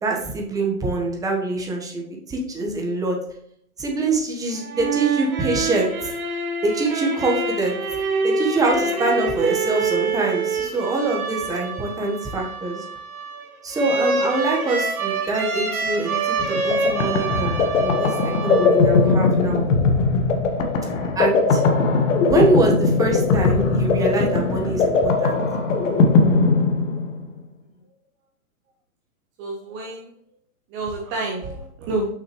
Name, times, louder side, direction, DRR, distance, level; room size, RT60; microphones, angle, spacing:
voice 1, 0.0-2.0 2.3-3.2 3.8-5.9 6.6-7.8 8.2-12.8 13.6-17.5 17.8-18.1 18.4-19.7 21.2-21.6 22.2-25.4, right 2 dB, 10° right, 0 dB, 1.1 m, -24 dB
sound 1, 4.5-19.1, right 4 dB, 70° right, 1.7 m, -26 dB
sound 2, 16.4-27.3, left 3 dB, 60° left, 1.2 m, -19 dB
voice 2, 29.4-30.1 30.7-32.1, right 2 dB, 25° right, 1 dB, 0.8 m, -28 dB
6.4 x 5.9 x 3.0 m, 0.69 s
hypercardioid pair, 135°, 43 cm